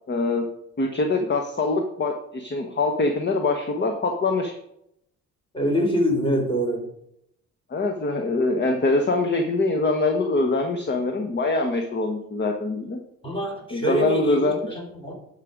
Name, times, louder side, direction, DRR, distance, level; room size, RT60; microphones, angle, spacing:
voice 1, 0.1-0.5 0.8-4.5 7.7-13.0 13.7-14.6, left 2 dB, 35° left, 4 dB, 1.2 m, -24 dB
voice 2, 5.5-6.9 13.2-15.1, equal, 15° left, 1 dB, 3.6 m, -25 dB
12.0 x 5.0 x 5.1 m, 0.76 s
cardioid pair, 90°, 30 cm